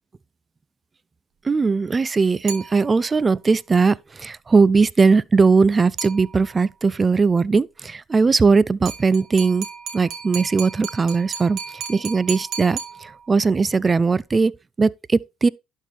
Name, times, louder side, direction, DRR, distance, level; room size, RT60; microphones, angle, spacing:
voice 1, 1.4-9.7 9.9-11.6 11.9-15.5, right 4 dB, 25° right, 0.3 m, -19 dB
sound 1, 2.5-3.3 6.0-6.7 8.9-13.5, right 7 dB, 65° right, 1.7 m, -35 dB
11.0 x 4.4 x 3.3 m
supercardioid pair, 75°, 0 cm